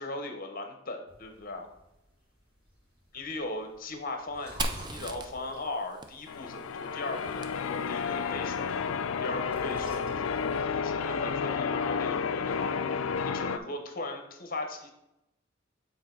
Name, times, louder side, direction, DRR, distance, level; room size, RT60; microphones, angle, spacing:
voice 1, 0.0-1.7 3.1-12.8 13.2-14.9, left 2 dB, 45° left, 4 dB, 1.0 m, -38 dB
sound 1, 1.1-13.2, equal, 45° right, 2.4 m, -54 dB
Fire, 4.6-8.3, right 2 dB, 20° right, 0.4 m, -39 dB
Church bell, 6.3-13.6, left 6 dB, 70° left, 0.4 m, -31 dB
8.0 x 4.4 x 3.9 m, 0.89 s
head